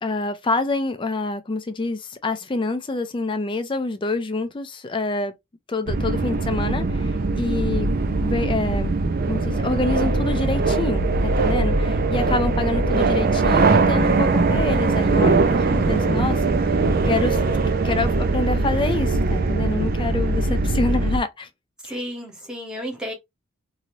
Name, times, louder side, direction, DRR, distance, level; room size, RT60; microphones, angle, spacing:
voice 1, 0.0-5.3 5.7-7.9 8.2-9.0 9.3-16.7 17.0-17.5 17.8-21.5 21.8-22.0, left 3 dB, 25° left, 0.4 m, -27 dB
sound 1, 5.9-21.2, right 3 dB, 45° right, 0.4 m, -21 dB
voice 2, 21.8-23.1, equal, 5° right, 1.1 m, -32 dB
2.7 x 2.6 x 3.0 m
head